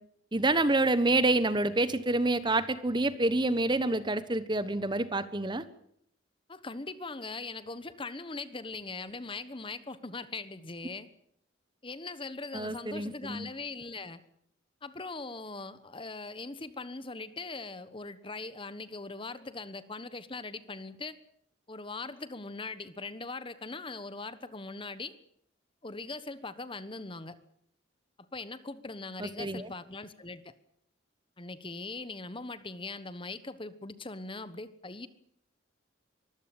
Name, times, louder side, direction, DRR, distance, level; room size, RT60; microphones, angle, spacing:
voice 1, 0.3-5.6 12.5-13.5 29.2-29.7, right 2 dB, 25° right, 14 dB, 1.1 m, -27 dB
voice 2, 6.5-11.1 11.8-14.2 14.8-21.2 21.7-25.2 25.8-27.4 28.2-30.5 31.4-35.1, left 3 dB, 25° left, 14 dB, 1.2 m, -41 dB
24.0 x 15.5 x 8.9 m, 0.68 s
head